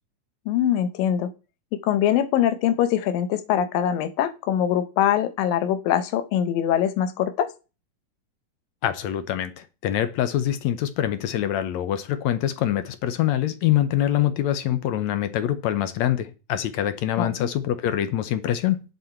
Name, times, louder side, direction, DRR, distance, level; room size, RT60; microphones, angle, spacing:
voice 1, 0.5-1.3 1.7-7.5 17.2-17.3, left 10 dB, 90° left, 2.6 m, -23 dB
voice 2, 8.8-18.8, left 11 dB, 75° left, 1.8 m, -24 dB
10.5 x 7.9 x 4.4 m
omnidirectional pair, 3.9 m